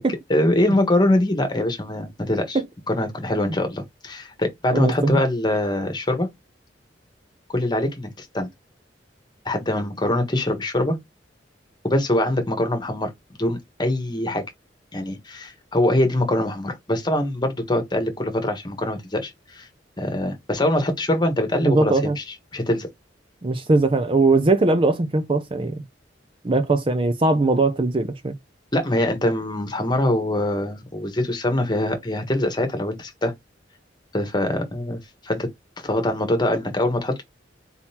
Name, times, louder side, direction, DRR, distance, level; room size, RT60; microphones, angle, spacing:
voice 1, 0.3-2.6 2.9-6.3 7.5-8.5 9.4-11.0 11.8-14.4 14.9-19.7 20.0-22.2 22.5-22.9 28.7-33.3 34.1-35.5 35.8-37.2, left 1 dB, 25° left, 1.3 m, -23 dB
voice 2, 4.7-5.2 21.6-22.2 23.4-25.8 26.4-28.3, right 2 dB, 30° right, 0.5 m, -20 dB
4.3 x 3.8 x 2.9 m
head